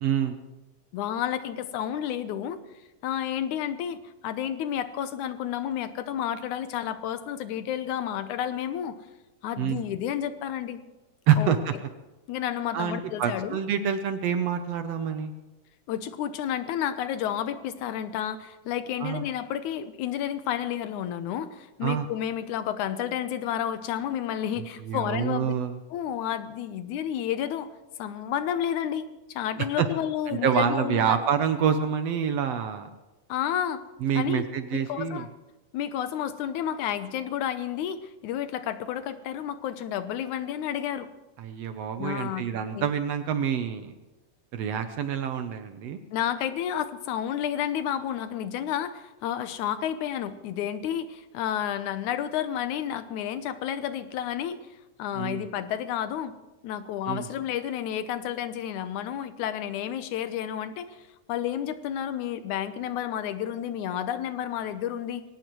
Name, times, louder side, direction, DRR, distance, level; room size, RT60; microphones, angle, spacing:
voice 1, 0.0-0.4 9.6-9.8 11.3-11.7 12.7-15.3 19.0-19.2 21.8-22.1 24.8-25.7 29.8-29.9 30.3-32.9 34.0-35.3 41.4-43.9 44.5-46.0 55.2-55.5 57.1-57.3, right 8 dB, 80° right, 8 dB, 1.4 m, -27 dB
voice 2, 0.9-2.6 3.0-4.0 4.2-9.0 9.4-10.8 11.4-11.5 12.3-13.6 15.9-25.5 25.9-27.7 28.0-31.2 33.3-33.8 34.2-34.5 34.7-35.3 35.7-41.1 42.0-42.5 42.7-42.9 46.1-54.6 55.0-56.3 56.6-61.0 61.3-65.2, left 10 dB, 75° left, 11 dB, 2.0 m, -31 dB
22.5 x 18.0 x 3.1 m, 1.1 s
omnidirectional pair, 3.9 m